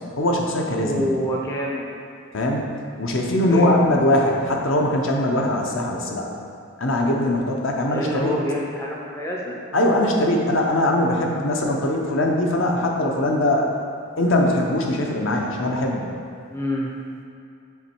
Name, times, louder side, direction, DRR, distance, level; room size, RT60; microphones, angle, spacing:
voice 1, 0.2-1.0 2.3-2.6 3.0-6.3 6.8-8.3 9.7-13.7 14.2-16.1, left 1 dB, 60° left, 0 dB, 0.7 m, -21 dB
voice 2, 0.8-1.9 3.4-3.8 7.9-9.6 16.5-16.9, equal, 10° left, -3 dB, 0.5 m, -27 dB
7.1 x 3.1 x 4.4 m, 2.4 s
head